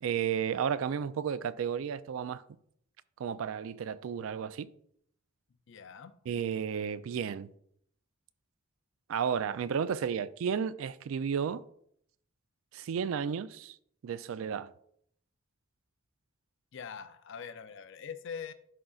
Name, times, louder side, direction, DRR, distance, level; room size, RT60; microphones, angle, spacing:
voice 1, 0.0-2.4 3.2-4.7 6.3-7.5 9.1-11.6 12.7-13.8 14.0-14.7, right 7 dB, 70° right, 0.3 m, -33 dB
voice 2, 5.7-6.1 16.7-18.5, left 6 dB, 60° left, 0.4 m, -43 dB
11.0 x 3.8 x 2.4 m
head